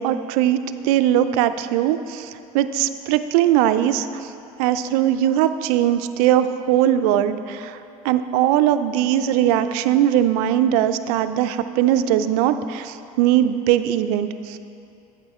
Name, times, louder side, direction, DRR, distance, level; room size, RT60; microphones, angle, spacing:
voice 1, 0.0-2.3 2.5-4.1 4.6-7.7 8.0-14.6, right 11 dB, 75° right, 11 dB, 0.4 m, -20 dB
8.8 x 8.0 x 4.2 m, 2.7 s
hypercardioid pair, 80°, 19 cm